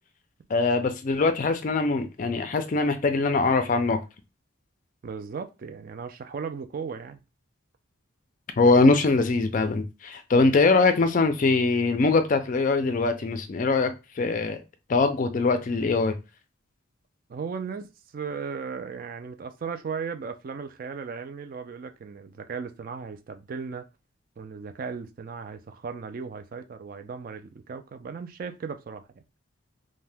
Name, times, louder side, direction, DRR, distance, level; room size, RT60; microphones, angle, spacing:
voice 1, 0.5-4.0 8.6-14.6 14.9-16.2, left 3 dB, 40° left, 0.3 m, -22 dB
voice 2, 5.0-7.2 17.3-23.9 24.4-29.1, right 5 dB, 40° right, 0.3 m, -36 dB
2.7 x 2.1 x 3.3 m
head